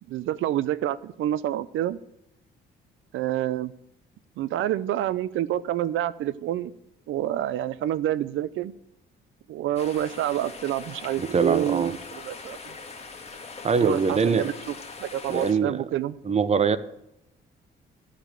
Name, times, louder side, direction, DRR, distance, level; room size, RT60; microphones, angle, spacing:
voice 1, 0.1-2.0 3.1-3.7 4.4-6.7 7.1-8.7 9.5-12.7 13.8-14.7 15.0-16.1, right 12 dB, 80° right, 18 dB, 0.6 m, -28 dB
sound 1, 9.7-15.5, left 4 dB, 30° left, 1.9 m, -41 dB
voice 2, 11.2-12.0 13.6-14.5 15.3-15.8 16.2-16.8, right 5 dB, 35° right, 14 dB, 0.9 m, -23 dB
13.0 x 5.1 x 9.0 m, 0.83 s
cardioid pair, 90°, 20 cm